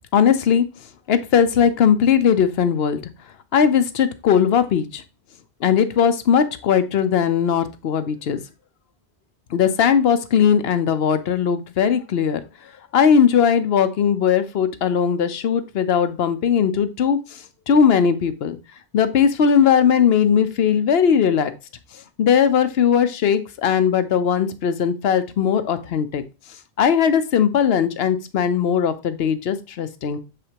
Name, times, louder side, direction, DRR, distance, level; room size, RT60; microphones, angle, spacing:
voice 1, 0.1-0.7 1.1-3.0 3.5-5.0 5.6-8.4 9.5-12.4 12.9-18.6 18.9-21.5 22.2-26.2 26.8-30.2, left 7 dB, 65° left, 11 dB, 0.9 m, -19 dB
7.1 x 5.0 x 2.9 m, 0.29 s
omnidirectional pair, 1.1 m